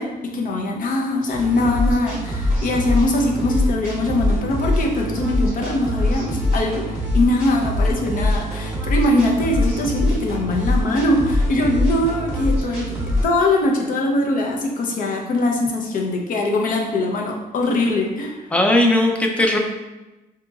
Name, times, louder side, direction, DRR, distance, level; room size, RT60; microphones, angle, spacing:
voice 1, 0.0-18.4, left 2 dB, 60° left, 1 dB, 0.7 m, -22 dB
sound 1, 1.3-13.2, left 1 dB, 10° right, 0.9 m, -23 dB
voice 2, 18.5-19.6, left 1 dB, 10° left, 1 dB, 0.4 m, -17 dB
4.9 x 2.8 x 2.4 m, 1.1 s
cardioid pair, 155°, 16 cm